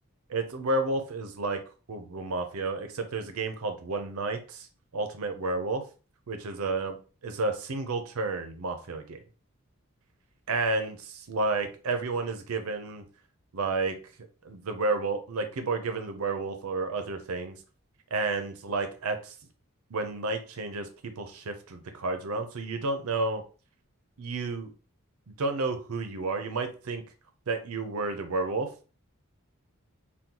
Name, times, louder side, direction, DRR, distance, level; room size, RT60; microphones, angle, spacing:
voice 1, 0.3-1.6 1.9-4.7 4.9-5.8 6.3-7.0 7.2-9.2 10.5-13.0 13.5-14.0 14.4-17.6 18.1-19.3 19.9-23.4 24.2-24.7 25.4-27.0 27.5-28.7, right 3 dB, 80° right, 7 dB, 0.5 m, -31 dB
3.7 x 2.2 x 2.8 m, 0.35 s
head